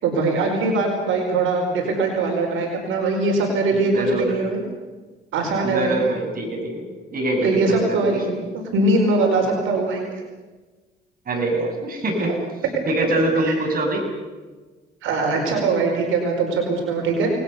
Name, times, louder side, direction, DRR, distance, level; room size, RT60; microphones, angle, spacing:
voice 1, 0.0-4.6 5.3-6.0 7.4-10.0 12.2-12.3 13.4-13.5 15.0-17.3, right 3 dB, 85° right, 2 dB, 4.7 m, -21 dB
voice 2, 3.7-4.3 5.6-6.9 7.1-8.2 11.3-12.4 12.9-14.1, right 2 dB, 45° right, 3 dB, 7.0 m, -24 dB
28.5 x 20.0 x 6.9 m, 1.3 s
cardioid pair, 90°, 20 cm